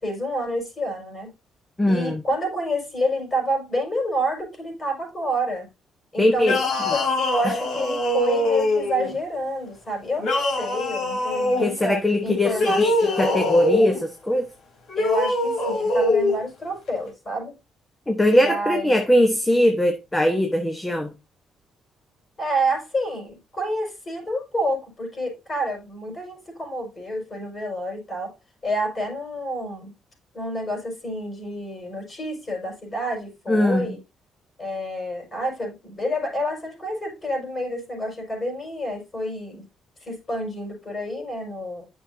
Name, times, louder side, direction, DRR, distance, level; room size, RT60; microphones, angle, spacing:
voice 1, 0.0-1.3 1.9-5.7 6.1-13.4 15.0-17.5 18.3-19.4 22.4-28.3 28.6-29.9 30.3-34.0 34.6-39.7 40.0-41.8, equal, 30° left, 5.4 m, -29 dB
voice 2, 1.8-2.2 6.2-6.6 6.9-7.0 7.4-7.5 11.6-14.5 18.1-21.1 33.5-33.9, left 1 dB, 15° left, 1.2 m, -21 dB
sound 1, 6.4-9.1 10.2-11.7 12.5-14.0 14.9-16.4, left 2 dB, 65° left, 3.7 m, -23 dB
9.7 x 6.5 x 2.7 m
cardioid pair, 90°, 0 cm